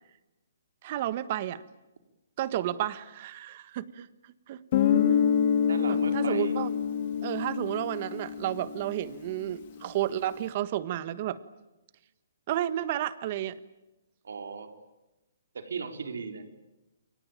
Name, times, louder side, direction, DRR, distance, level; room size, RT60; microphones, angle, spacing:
voice 1, 0.8-1.6 2.4-4.1 4.5-4.6 5.9-6.7 7.2-11.4 12.5-13.6, right 12 dB, 40° right, 15 dB, 1.4 m, -31 dB
Guitar, 4.7-9.3, left 8 dB, 40° left, 2.2 m, -26 dB
voice 2, 5.7-6.5 14.2-14.7 15.5-16.4, right 5 dB, 80° right, 7 dB, 4.1 m, -37 dB
29.0 x 22.5 x 9.0 m, 0.98 s
hypercardioid pair, 160°, 0 cm